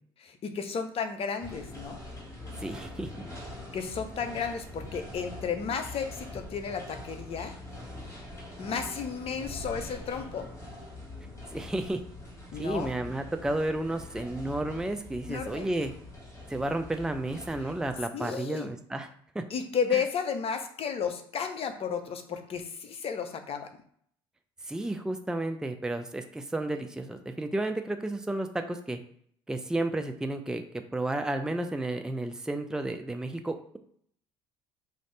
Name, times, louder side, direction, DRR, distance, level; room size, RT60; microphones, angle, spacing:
voice 1, 0.2-2.0 3.7-7.5 8.6-10.5 12.5-12.9 15.3-15.7 18.1-18.7 19.5-23.7, left 6 dB, 45° left, 7 dB, 0.7 m, -33 dB
sound 1, 1.4-18.0, left 2 dB, 20° left, 1.7 m, -43 dB
voice 2, 2.6-3.1 11.5-12.0 12.5-15.9 16.5-19.1 19.3-19.4 19.9-20.0 24.6-29.0 29.5-30.6 30.9-33.8, right 2 dB, 5° right, 6 dB, 0.5 m, -32 dB
4.9 x 2.7 x 3.2 m, 0.62 s
hypercardioid pair, 60°, 13 cm